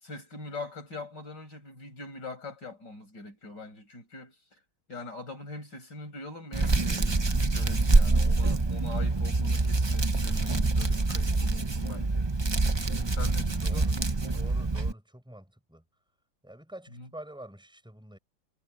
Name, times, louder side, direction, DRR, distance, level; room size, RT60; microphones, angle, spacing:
voice 1, 0.0-4.6 4.9-12.3 13.1-13.9 16.9-17.1, left 2 dB, 60° left, 7.7 m, -42 dB
Hands, 6.5-14.9, right 3 dB, 35° right, 0.4 m, -25 dB
voice 2, 12.8-14.0 14.3-15.8 16.4-18.2, right 1 dB, ahead, 6.9 m, -47 dB
omnidirectional pair, 2.1 m